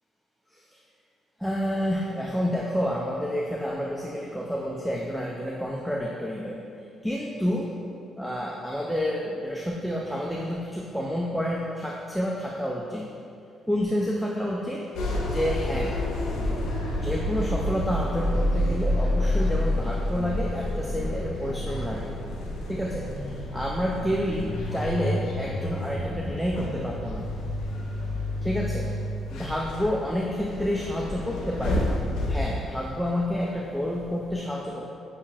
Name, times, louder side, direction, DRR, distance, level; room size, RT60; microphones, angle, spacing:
voice 1, 1.4-6.6 7.0-7.7 8.2-13.1 13.7-14.9 15.2-16.0 17.0-22.1 22.7-27.3 28.4-28.9 29.3-31.9 32.3-34.9, equal, ahead, -2 dB, 0.3 m, -29 dB
sound 1, 14.9-33.6 34.0-34.3, left 1 dB, 90° left, 0.5 m, -29 dB
5.5 x 2.9 x 2.4 m, 2.5 s
cardioid pair, 90°, 0 cm